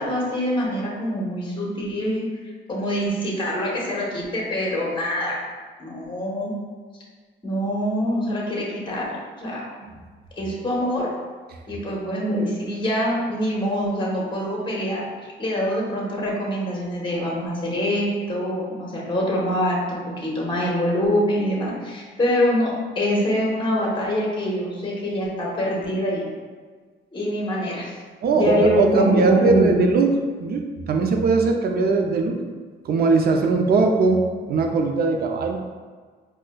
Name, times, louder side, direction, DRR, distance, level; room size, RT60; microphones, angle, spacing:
voice 1, 0.0-2.3 2.7-5.4 5.8-6.6 7.4-9.6 10.4-11.1 11.7-15.0 15.4-26.3 27.1-27.9 28.3-29.9, equal, 25° left, -3 dB, 1.0 m, -24 dB
voice 2, 28.2-30.1 30.4-32.4 32.8-35.6, right 4 dB, 50° right, 4 dB, 0.5 m, -20 dB
4.6 x 2.2 x 2.2 m, 1.5 s
cardioid pair, 90°, 20 cm